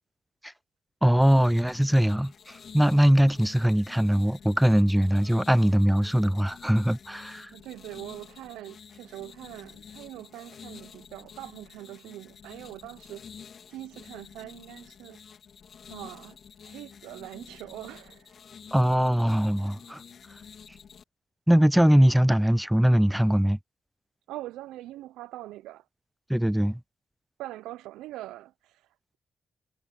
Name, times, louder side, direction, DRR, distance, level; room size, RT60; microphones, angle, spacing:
voice 1, 1.0-7.5 18.7-20.0 21.5-23.6 26.3-26.8, equal, 5° right, 0.3 m, -21 dB
sound 1, 1.2-21.0, left 7 dB, 65° left, 2.9 m, -49 dB
voice 2, 7.5-13.2 13.7-15.2 15.9-18.4 24.3-25.9 27.4-29.2, right 15 dB, 90° right, 0.5 m, -42 dB
supercardioid pair, 50°, 0 cm